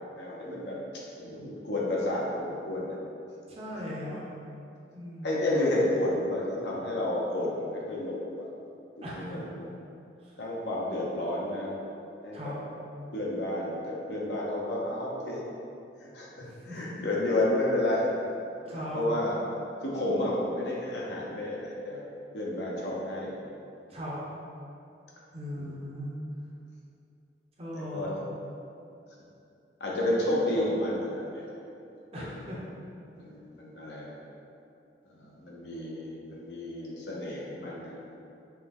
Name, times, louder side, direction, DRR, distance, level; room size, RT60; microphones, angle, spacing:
voice 1, 0.2-0.8 1.2-2.9 5.2-8.5 9.3-9.5 10.4-11.7 12.2-12.5 13.1-15.4 16.0-18.0 18.7-19.3 19.8-22.0 22.3-23.3 25.6-25.7 27.9-28.1 29.8-31.5 33.2-34.1 35.2-37.9, left 1 dB, 70° left, -5 dB, 0.9 m, -31 dB
voice 2, 3.5-4.2 4.9-5.5 9.0-9.5 10.2-10.4 12.3-12.6 16.4-17.0 18.7-19.0 23.9-24.2 25.3-26.1 27.6-28.2 32.1-32.6, equal, 35° right, -5 dB, 0.8 m, -39 dB
5.9 x 2.3 x 3.5 m, 2.6 s
head